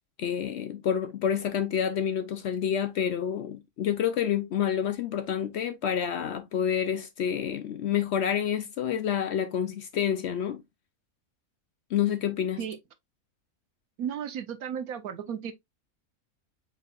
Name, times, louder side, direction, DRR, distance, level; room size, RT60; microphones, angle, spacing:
voice 1, 0.2-10.6 11.9-12.6, left 8 dB, 65° left, 0.7 m, -28 dB
voice 2, 14.0-15.5, right 8 dB, 85° right, 1.2 m, -34 dB
4.5 x 4.2 x 2.4 m
omnidirectional pair, 1.5 m